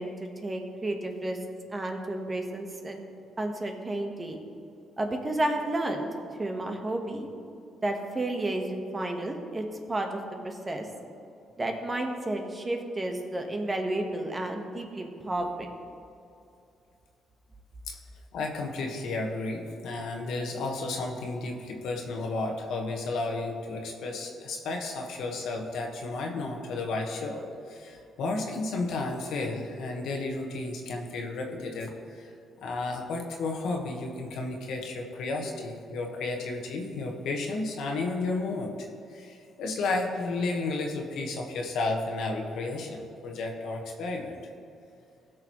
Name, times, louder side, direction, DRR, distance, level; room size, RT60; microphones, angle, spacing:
voice 1, 0.0-1.4 1.7-3.0 3.4-4.4 5.0-6.1 6.4-7.3 7.8-10.8 11.6-15.7, right 1 dB, 25° right, 3 dB, 1.3 m, -31 dB
voice 2, 18.3-32.3 32.6-44.4, left 3 dB, 80° left, 2 dB, 1.3 m, -32 dB
16.5 x 6.4 x 3.1 m, 2.6 s
cardioid pair, 90°, 0 cm